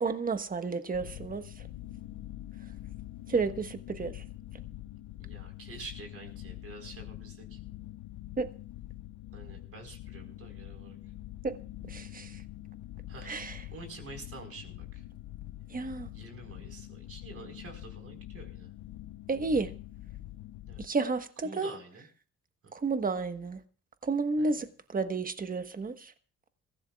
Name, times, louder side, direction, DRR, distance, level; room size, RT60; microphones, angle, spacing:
voice 1, 0.0-1.5 3.3-4.2 8.4-8.5 11.4-11.6 11.8-12.4 13.3-13.6 15.7-16.1 19.3-19.7 20.8-21.7 22.7-23.6 24.0-26.1, right 4 dB, 30° right, 1.3 m, -31 dB
sound 1, 0.9-20.9, left 15 dB, 75° left, 0.7 m, -45 dB
voice 2, 5.2-7.6 9.3-11.0 13.1-13.3 13.7-15.0 16.1-18.7 20.7-20.9 21.4-22.1 22.6-22.7 24.4-24.6, right 3 dB, 50° right, 4.6 m, -48 dB
24.0 x 15.5 x 2.4 m
cardioid pair, 90°, 30 cm